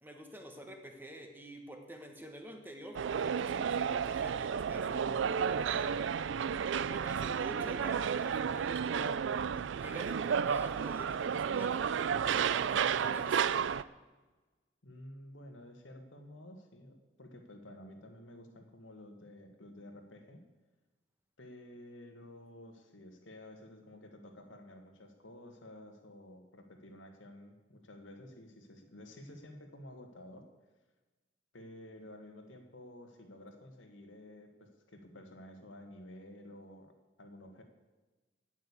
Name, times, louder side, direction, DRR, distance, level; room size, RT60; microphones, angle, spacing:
voice 1, 0.0-6.2 6.8-9.1 9.5-13.5, equal, 10° right, 3 dB, 1.4 m, -48 dB
sound 1, 2.9-13.8, right 7 dB, 75° right, 0.4 m, -32 dB
voice 2, 14.8-20.4 21.4-30.4 31.5-36.9 37.2-37.6, left 1 dB, 90° left, 4 dB, 1.8 m, -52 dB
9.2 x 9.1 x 8.4 m, 1.2 s
head